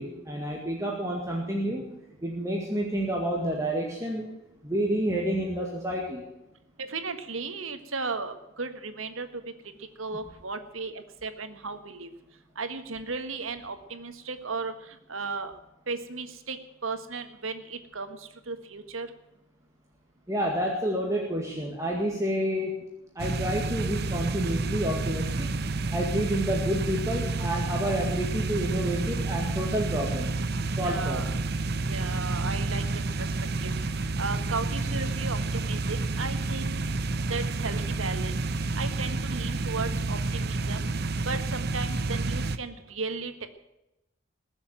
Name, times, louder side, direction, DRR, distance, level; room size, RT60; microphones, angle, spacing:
voice 1, 0.0-2.0 2.2-4.3 4.6-6.2 20.3-22.9 23.2-25.5 25.9-30.3 30.8-31.4, equal, 15° right, -1 dB, 2.1 m, -29 dB
voice 2, 6.8-9.3 10.0-12.1 12.6-15.5 15.9-16.6 16.8-19.1 30.8-31.3 31.9-32.8 33.2-33.3 33.6-33.7 34.2-36.9 37.3-38.3 38.8-40.9 41.2-43.5, right 4 dB, 80° right, 8 dB, 1.6 m, -35 dB
sound 1, 23.2-42.6, right 3 dB, 50° right, 0.8 m, -29 dB
21.0 x 7.2 x 9.1 m, 0.92 s
head